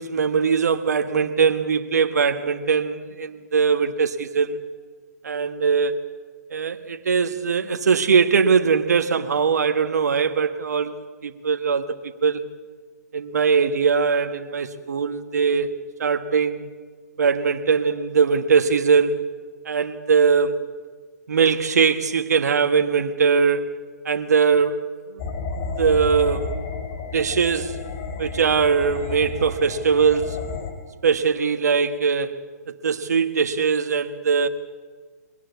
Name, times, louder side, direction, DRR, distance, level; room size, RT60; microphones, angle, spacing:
voice 1, 0.0-4.6 5.2-6.0 6.5-10.9 11.2-11.9 12.2-12.4 13.1-15.7 16.0-16.7 17.2-19.2 19.6-20.6 21.3-23.7 24.0-24.8 25.1-25.2 25.8-26.5 27.1-27.8 28.2-30.4 31.0-32.3 32.8-34.5, right 5 dB, 70° right, 1.5 m, -21 dB
sound 1, 25.2-30.7, left 4 dB, 35° left, 2.9 m, -31 dB
23.0 x 19.0 x 8.3 m
hypercardioid pair, 140°, 9 cm